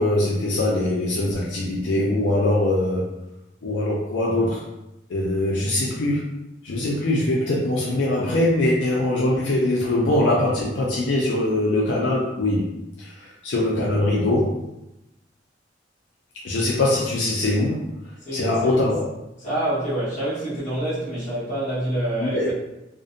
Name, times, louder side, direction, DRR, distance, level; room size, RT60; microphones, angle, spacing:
voice 1, 0.0-3.1 3.6-4.6 5.1-6.3 6.6-12.7 13.0-14.5 16.4-17.8 18.3-19.0 22.2-22.5, left 1 dB, 80° left, -4 dB, 0.4 m, -22 dB
voice 2, 18.2-18.8 19.4-22.5, right 1 dB, 40° left, -9 dB, 1.2 m, -27 dB
2.5 x 2.1 x 2.5 m, 0.90 s
head